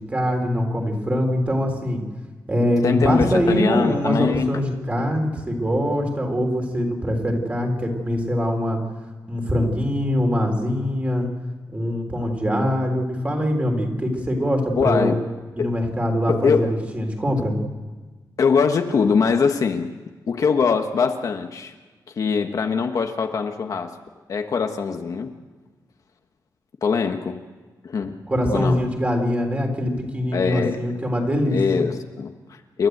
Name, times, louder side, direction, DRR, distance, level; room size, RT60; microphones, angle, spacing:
voice 1, 0.0-2.0 2.5-8.8 9.3-11.3 11.7-15.2 15.6-17.6 28.3-31.6, equal, 20° right, 2 dB, 3.7 m, -23 dB
voice 2, 2.8-4.5 14.8-15.2 15.6-15.7 16.3-16.8 18.4-19.9 20.3-21.7 22.2-23.9 24.3-25.3 26.8-27.4 27.8-28.2 28.5-28.8 30.3-30.8 31.5-32.9, left 5 dB, 55° left, 5 dB, 1.2 m, -22 dB
28.5 x 12.5 x 8.0 m, 1.3 s
wide cardioid pair, 150°, 7 cm